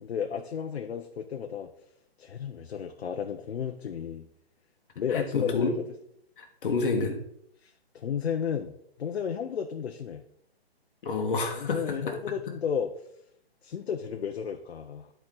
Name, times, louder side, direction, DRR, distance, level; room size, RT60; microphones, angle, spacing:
voice 1, 0.0-1.7 2.2-4.3 5.0-5.8 7.6-10.2 11.5-12.9 13.6-15.1, left 7 dB, 85° left, 5 dB, 0.8 m, -33 dB
voice 2, 5.1-5.7 6.4-7.2 11.0-12.2, left 4 dB, 55° left, 3 dB, 1.6 m, -29 dB
10.0 x 4.6 x 3.8 m, 0.73 s
hypercardioid pair, 170°, 32 cm